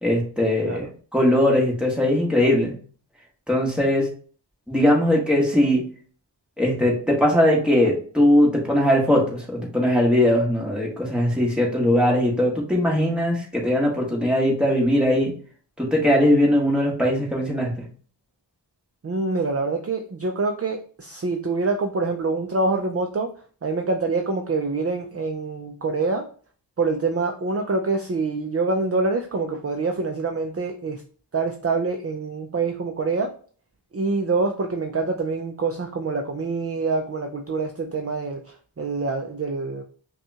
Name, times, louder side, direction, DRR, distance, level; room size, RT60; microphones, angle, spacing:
voice 1, 0.0-2.7 3.5-4.1 4.7-5.8 6.6-15.3 15.8-17.8, left 1 dB, ahead, -3 dB, 1.5 m, -20 dB
voice 2, 19.0-23.3 23.6-26.2 26.8-31.0 31.3-33.3 33.9-39.8, right 3 dB, 35° right, 4 dB, 0.4 m, -25 dB
5.4 x 2.4 x 2.8 m, 0.43 s
wide cardioid pair, 55°, 45 cm